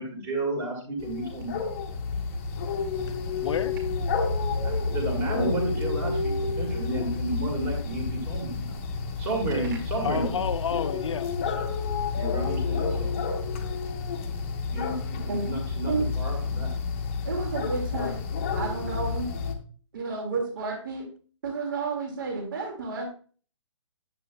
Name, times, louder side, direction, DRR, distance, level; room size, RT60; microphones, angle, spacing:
voice 1, 0.0-1.6 4.6-8.8 9.2-10.4 12.1-13.2 14.7-16.8, right 2 dB, 15° right, 2.0 m, -32 dB
sound 1, 1.0-19.5, left 4 dB, 25° left, 1.0 m, -30 dB
voice 2, 3.1-3.7 9.5-9.7 10.0-11.7, left 7 dB, 70° left, 0.8 m, -31 dB
voice 3, 17.2-18.2 18.5-19.3 19.9-21.1 21.4-23.1, right 4 dB, 45° right, 2.1 m, -31 dB
9.0 x 8.0 x 2.3 m
hypercardioid pair, 165°, 16 cm